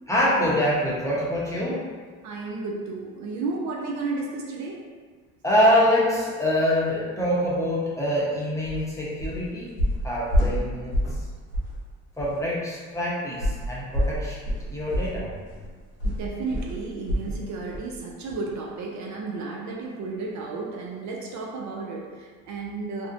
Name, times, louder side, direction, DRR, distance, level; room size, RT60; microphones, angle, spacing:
voice 1, 0.1-1.8 5.4-9.7 10.0-11.0 12.2-14.4 14.7-15.4, equal, 10° left, -7 dB, 0.7 m, -24 dB
voice 2, 2.2-4.9 10.4-10.5 16.0-23.1, right 3 dB, 60° right, 0 dB, 0.4 m, -33 dB
sound 1, 8.6-8.8 9.2-9.4 9.8-11.2 11.5-11.8 12.2-12.3 13.4-17.4 17.7-17.9 18.3-18.4, equal, 90° left, 0.7 m, -27 dB
2.5 x 2.1 x 2.5 m, 1.5 s
supercardioid pair, 80°, 32 cm